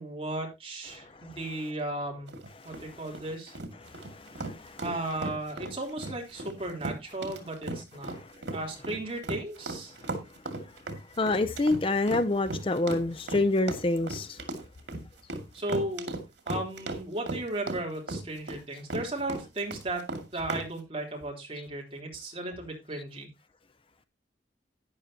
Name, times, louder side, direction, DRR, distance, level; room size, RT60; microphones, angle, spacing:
voice 1, 0.0-2.3 2.6-3.6 4.8-8.1 8.5-9.9 15.5-16.1 16.5-20.0 20.3-23.3, right 1 dB, 30° right, 3.5 m, -35 dB
sound 1, 2.3-20.7, right 2 dB, 85° right, 2.3 m, -36 dB
voice 2, 2.5-3.2 3.7-5.2 8.1-8.2 11.2-14.4 21.6-21.7, left 2 dB, 30° left, 0.6 m, -28 dB
12.0 x 10.0 x 2.8 m
head